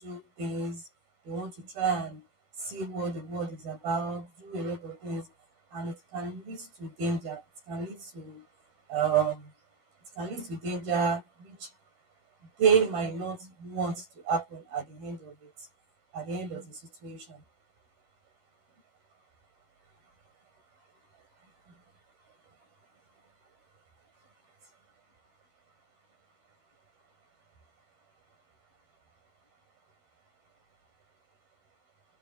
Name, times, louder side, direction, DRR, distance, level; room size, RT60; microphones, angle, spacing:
voice 1, 0.0-0.8 1.3-2.2 2.6-5.3 5.7-7.4 7.7-8.4 8.9-9.4 10.2-11.7 12.6-15.5 16.1-17.4, right 5 dB, 65° right, 8.2 m, -31 dB
omnidirectional pair, 4.6 m